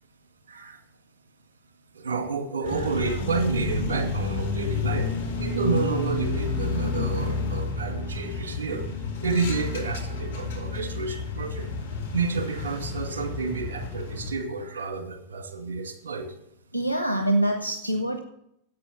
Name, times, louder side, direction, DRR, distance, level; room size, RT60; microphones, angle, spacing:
voice 1, 0.5-0.8 1.9-5.1 5.4-8.9 9.2-11.7 12.1-16.3 17.0-17.2, right 4 dB, 65° right, 5 dB, 2.2 m, -30 dB
sound 1, 2.6-14.3, left 3 dB, 65° left, 2.6 m, -30 dB
voice 2, 16.7-18.2, right 1 dB, 85° right, 7 dB, 0.9 m, -25 dB
11.5 x 8.3 x 6.6 m, 0.77 s
figure-of-eight pair, 90°, 0 cm